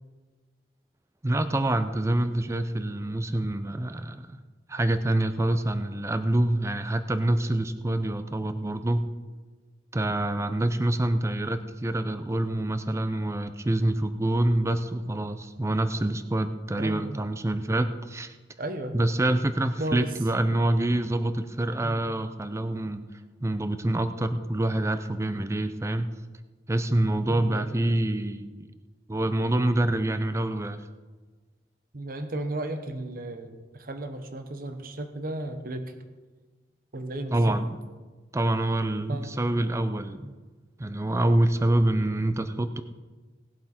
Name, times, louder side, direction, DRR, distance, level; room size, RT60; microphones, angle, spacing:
voice 1, 1.2-4.4 4.7-9.1 9.9-18.3 18.9-23.0 23.4-26.1 26.7-28.7 29.1-30.8 37.3-37.7 38.3-40.4 40.8-42.8, right 1 dB, 15° right, 10 dB, 0.5 m, -26 dB
voice 2, 16.8-17.2 18.6-18.9 19.8-20.2 21.8-22.1 27.3-27.7 31.9-35.9 36.9-37.6 39.1-39.3, right 1 dB, 50° right, 7 dB, 1.0 m, -34 dB
18.5 x 7.6 x 4.3 m, 1.3 s
head